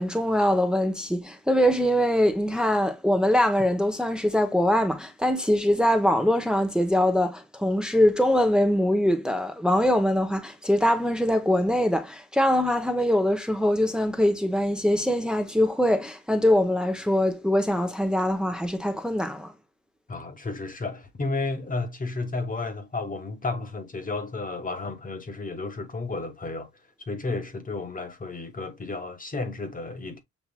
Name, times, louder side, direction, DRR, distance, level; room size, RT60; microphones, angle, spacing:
voice 1, 0.0-19.5, left 1 dB, 5° right, 0.7 m, -23 dB
voice 2, 20.1-26.7 27.0-30.2, left 3 dB, 25° left, 1.2 m, -32 dB
7.3 x 2.8 x 2.2 m
cardioid pair, 90°, 30 cm